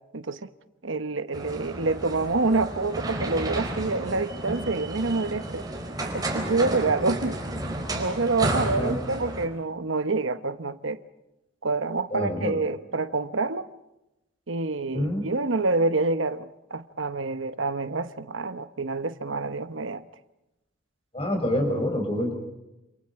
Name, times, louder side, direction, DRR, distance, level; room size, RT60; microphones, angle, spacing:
voice 1, 0.8-5.7 6.1-7.4 7.9-11.0 11.6-13.7 14.5-20.0 21.3-21.4, right 3 dB, 75° right, 1.0 m, -27 dB
sound 1, 1.3-9.5, right 1 dB, 20° right, 4.1 m, -32 dB
voice 2, 12.1-12.6 14.9-15.2 21.1-22.3, equal, 30° left, 5.8 m, -26 dB
28.0 x 27.5 x 4.8 m
head